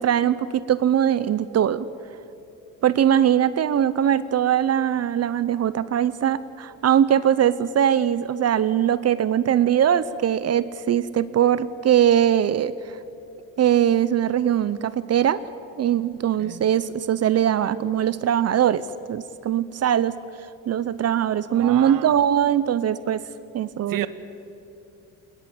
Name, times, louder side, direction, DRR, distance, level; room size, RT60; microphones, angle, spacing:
voice 1, 0.0-1.9 2.8-12.7 13.6-15.4 15.8-18.8 19.1-20.2 20.7-23.2 23.5-24.1, right 10 dB, 45° right, 16 dB, 0.8 m, -21 dB
voice 2, 21.5-22.2 23.9-24.1, right 13 dB, 65° right, 13 dB, 1.2 m, -32 dB
20.5 x 20.0 x 9.1 m, 2.7 s
cardioid pair, 95°, 36 cm